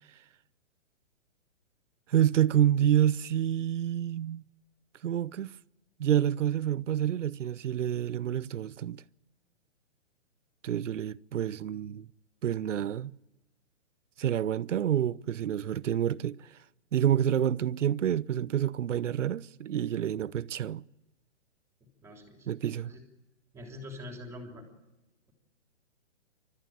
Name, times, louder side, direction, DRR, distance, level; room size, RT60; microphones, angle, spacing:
voice 1, 2.1-4.4 5.0-5.5 6.0-9.0 10.6-12.1 12.4-13.1 14.2-16.4 16.9-20.8 22.5-22.9, right 10 dB, 85° right, 0.7 m, -28 dB
voice 2, 22.0-22.5 22.8-23.0 23.5-24.7, left 1 dB, 5° right, 3.3 m, -44 dB
29.5 x 13.5 x 9.0 m
hypercardioid pair, 155°, 36 cm